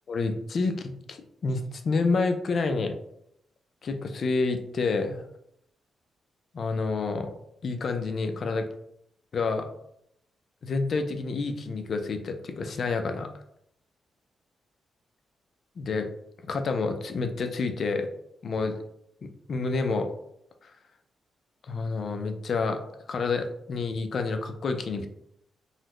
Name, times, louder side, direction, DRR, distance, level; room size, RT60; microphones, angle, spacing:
voice 1, 0.1-2.9 3.8-5.2 6.5-7.3 7.6-8.7 9.3-9.7 10.6-13.3 15.8-16.1 16.4-18.1 18.4-18.8 19.2-20.1 20.6-20.7 21.7-22.8 23.1-25.1, left 4 dB, 45° left, 6 dB, 0.4 m, -28 dB
3.9 x 2.1 x 3.0 m, 0.74 s
wide cardioid pair, 145°, 0 cm